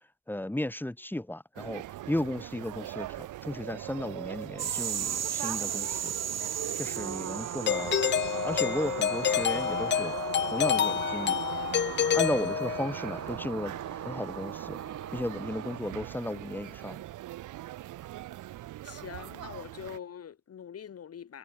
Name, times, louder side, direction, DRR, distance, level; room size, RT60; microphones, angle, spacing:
voice 1, 0.3-6.1 6.7-8.0 8.4-10.2 10.5-11.4 12.1-14.8 15.1-17.0, left 1 dB, 5° left, 2.7 m, -34 dB
sound 1, 1.6-20.0, right 14 dB, 85° right, 4.5 m, -42 dB
sound 2, 4.6-15.8, right 9 dB, 60° right, 4.1 m, -36 dB
Doorbell, 7.7-13.1, left 9 dB, 35° left, 0.6 m, -28 dB
voice 2, 18.8-21.4, left 8 dB, 50° left, 3.4 m, -43 dB
cardioid pair, 90°, 30 cm